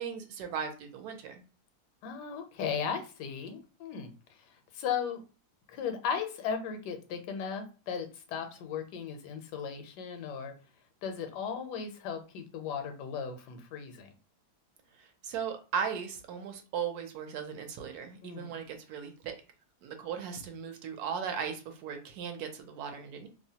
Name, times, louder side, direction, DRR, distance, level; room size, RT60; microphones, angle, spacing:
voice 1, 0.0-1.4 15.0-19.3 19.8-23.3, right 7 dB, 75° right, 5 dB, 1.1 m, -37 dB
voice 2, 2.0-4.1 4.7-5.2 5.7-10.5 11.0-14.1 18.2-18.5, left 7 dB, 90° left, 6 dB, 1.2 m, -36 dB
2.9 x 2.0 x 2.7 m, 0.34 s
omnidirectional pair, 1.7 m